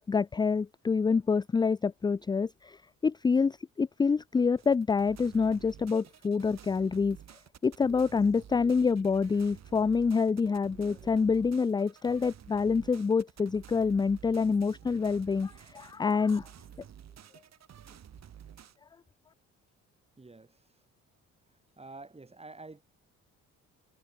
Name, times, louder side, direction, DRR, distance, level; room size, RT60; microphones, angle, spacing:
voice 1, 0.0-7.2 7.6-16.5, left 5 dB, 15° left, 0.3 m, -27 dB
sound 1, 4.6-18.8, right 9 dB, 60° right, 3.9 m, -51 dB
voice 2, 20.2-20.6 21.8-22.8, right 3 dB, 20° right, 7.6 m, -48 dB
cardioid pair, 90°, 30 cm